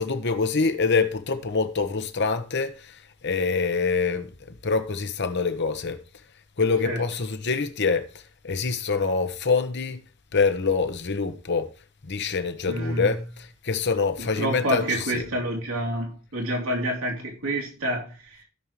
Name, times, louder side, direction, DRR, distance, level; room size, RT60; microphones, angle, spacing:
voice 1, 0.0-6.0 6.6-8.1 8.4-10.0 10.3-11.7 12.0-13.2 13.6-15.2, left 4 dB, 55° left, 1.1 m, -25 dB
voice 2, 12.7-13.1 14.2-18.4, right 1 dB, 85° right, 2.8 m, -28 dB
16.5 x 5.5 x 3.1 m
head